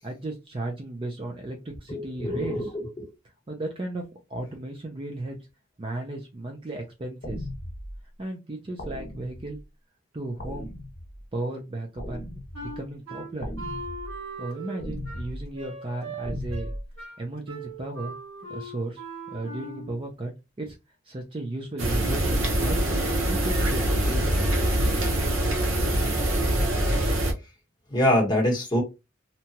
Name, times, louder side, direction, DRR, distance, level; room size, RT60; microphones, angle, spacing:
voice 1, 0.0-2.7 3.5-5.4 5.8-7.5 8.2-9.6 10.1-10.7 11.3-13.5 14.4-16.7 17.2-18.1 18.5-20.3 20.6-20.8 21.1-22.8 23.2-24.6, right 2 dB, 25° right, 0.4 m, -35 dB
voice 2, 1.9-3.1 27.9-28.8, left 1 dB, 20° left, 1.0 m, -24 dB
sound 1, 7.2-8.0 8.8-9.6 10.4-11.2 12.0-12.8 13.4-14.2 14.8-15.4 16.2-16.8, equal, 45° left, 1.2 m, -36 dB
Wind instrument woodwind instrument, 12.5-20.0, right 2 dB, 85° right, 1.5 m, -39 dB
sound 2, 21.8-27.3, right 1 dB, 70° right, 0.9 m, -24 dB
2.8 x 2.3 x 2.8 m
head